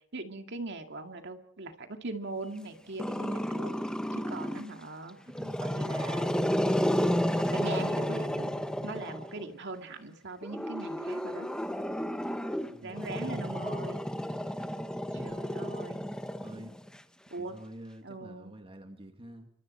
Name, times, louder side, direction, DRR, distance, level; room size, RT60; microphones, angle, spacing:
voice 1, 0.1-5.2 5.6-6.3 7.3-8.5 8.8-11.5 12.8-14.0 15.1-16.1 17.3-17.6 18.0-18.5, right 2 dB, 60° right, 5 dB, 2.2 m, -40 dB
Growling, 3.0-4.7 5.3-9.4 10.4-16.9, equal, 5° left, 1.1 m, -32 dB
voice 2, 5.2-5.7 12.7-13.9 15.1-15.4 16.4-16.8 17.4-19.5, equal, 25° right, 5 dB, 2.0 m, -48 dB
29.5 x 25.0 x 4.4 m, 0.71 s
head